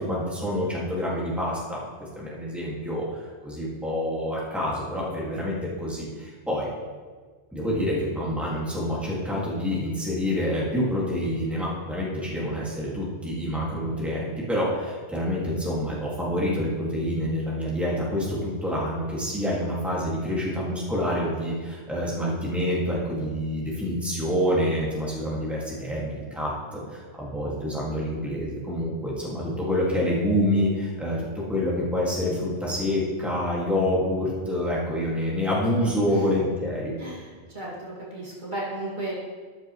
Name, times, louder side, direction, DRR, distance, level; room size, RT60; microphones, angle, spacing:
voice 1, 0.0-1.8 2.1-6.7 7.5-36.9, left 1 dB, ahead, -6 dB, 2.1 m, -27 dB
voice 2, 37.5-39.1, right 2 dB, 45° right, -6 dB, 2.5 m, -34 dB
13.0 x 8.6 x 3.2 m, 1.5 s
omnidirectional pair, 1.1 m